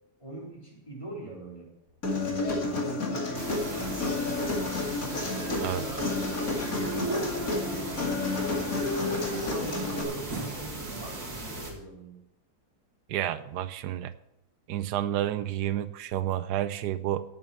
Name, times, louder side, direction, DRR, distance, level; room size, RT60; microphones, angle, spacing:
voice 1, 0.2-1.7 2.2-4.8 5.4-8.7 9.0-12.1, right 2 dB, 20° left, -4 dB, 4.1 m, -42 dB
Human voice, 2.0-10.0, left 3 dB, 60° left, 2.9 m, -30 dB
sound 1, 3.0-8.7, right 3 dB, 45° right, 2.0 m, -41 dB
sound 2, 3.3-11.7, right 2 dB, 70° right, 2.8 m, -38 dB
voice 2, 13.1-14.1 14.7-17.2, right 12 dB, 85° right, 13 dB, 1.2 m, -30 dB
17.5 x 8.6 x 4.3 m, 0.85 s
omnidirectional pair, 1.7 m